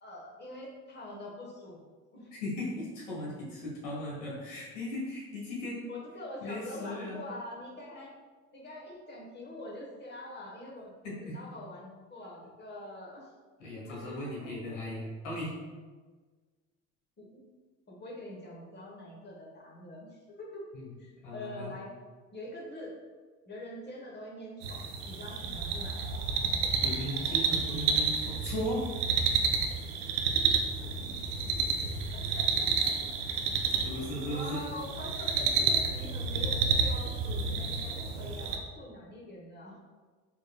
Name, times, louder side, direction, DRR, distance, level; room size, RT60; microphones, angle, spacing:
voice 1, 0.0-1.8 2.1-2.3 5.9-8.1 8.5-10.9 11.2-13.3 13.8-14.8 17.2-17.4 17.9-20.6 21.0-21.9 22.3-23.0 23.5-26.0 32.1-33.2 33.7-33.9 34.3-39.8, left 1 dB, 30° left, -3 dB, 1.1 m, -44 dB
voice 2, 2.3-5.9 6.4-7.2 11.0-11.4 13.6-15.5 20.7-20.9 21.2-21.7 26.8-28.8 33.8-34.6 35.4-35.7, left 1 dB, 90° left, -4 dB, 1.3 m, -37 dB
sound 1, 24.6-38.6, right 5 dB, 85° right, 0.5 m, -30 dB
4.7 x 3.1 x 2.2 m, 1.4 s
hypercardioid pair, 70°, 36 cm